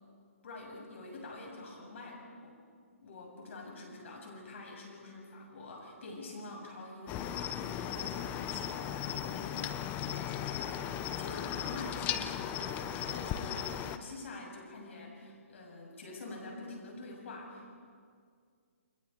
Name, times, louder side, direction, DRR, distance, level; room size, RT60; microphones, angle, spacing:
voice 1, 0.4-2.6 3.0-17.7, left 2 dB, 60° left, 0 dB, 7.2 m, -46 dB
Cricket, 7.1-14.0, left 10 dB, 20° left, 0.9 m, -37 dB
30.0 x 22.0 x 4.6 m, 2.1 s
figure-of-eight pair, 140°, 8 cm